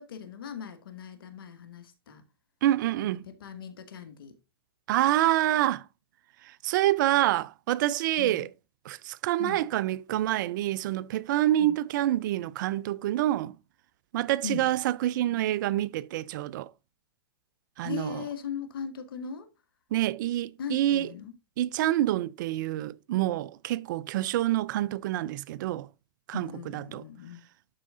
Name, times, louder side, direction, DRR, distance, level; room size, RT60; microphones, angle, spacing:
voice 1, 0.0-2.2 3.0-4.3 8.2-8.5 9.4-9.6 11.6-11.7 14.4-14.7 17.8-19.5 20.6-21.3 26.3-27.4, left 7 dB, 75° left, 1.7 m, -39 dB
voice 2, 2.6-3.2 4.9-5.8 6.4-8.5 8.9-13.5 14.1-16.7 17.8-18.2 19.9-21.1 21.6-25.9 26.3-27.0, right 14 dB, 60° right, 0.5 m, -27 dB
12.0 x 4.7 x 2.5 m
hypercardioid pair, 115°, 12 cm